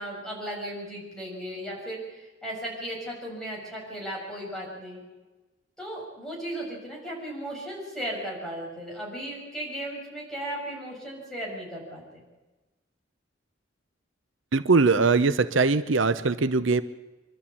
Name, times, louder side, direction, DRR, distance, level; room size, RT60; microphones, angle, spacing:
voice 1, 0.0-5.0 5.8-12.2, right 1 dB, 5° left, -4 dB, 7.1 m, -36 dB
voice 2, 14.5-16.8, right 4 dB, 80° right, 13 dB, 0.8 m, -21 dB
25.5 x 12.5 x 8.6 m, 1.1 s
head